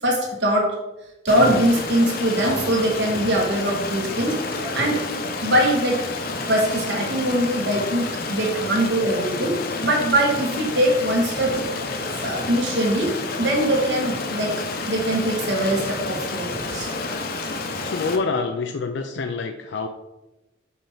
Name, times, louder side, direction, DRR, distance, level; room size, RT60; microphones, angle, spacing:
voice 1, 0.0-0.7 1.2-5.0 5.4-6.0 6.5-11.6 12.1-14.5 14.9-16.9, right 1 dB, 60° right, -1 dB, 1.5 m, -22 dB
Stream, 1.3-18.2, left 3 dB, 50° left, 0.8 m, -29 dB
voice 2, 17.8-19.9, left 4 dB, 65° left, 5 dB, 0.5 m, -26 dB
5.5 x 4.4 x 5.7 m, 0.99 s
head